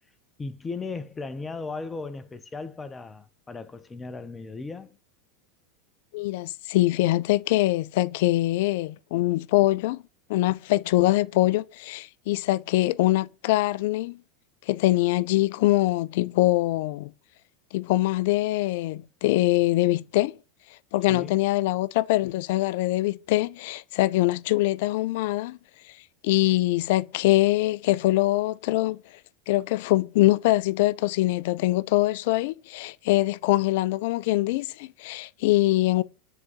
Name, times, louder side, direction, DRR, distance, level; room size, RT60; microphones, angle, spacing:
voice 1, 0.4-5.0 21.1-21.4, left 3 dB, 20° left, 0.7 m, -36 dB
voice 2, 6.1-10.0 10.3-14.2 14.7-17.1 17.7-20.3 20.9-25.6 26.2-29.0 29.5-36.0, left 17 dB, 65° left, 0.3 m, -23 dB
9.4 x 3.8 x 3.0 m
hypercardioid pair, 90°, 0 cm